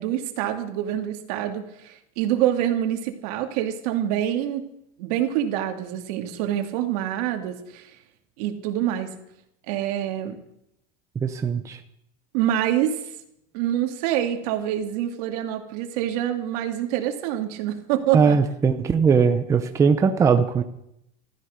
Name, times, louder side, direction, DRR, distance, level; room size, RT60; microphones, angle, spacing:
voice 1, 0.0-4.6 5.0-7.9 8.4-9.1 9.7-10.4 12.3-13.0 13.5-18.4, right 11 dB, 70° right, 5 dB, 2.5 m, -26 dB
voice 2, 11.2-11.8 18.1-20.6, right 5 dB, 15° right, 7 dB, 0.7 m, -20 dB
15.5 x 13.5 x 6.5 m, 0.77 s
cardioid pair, 175°, 20 cm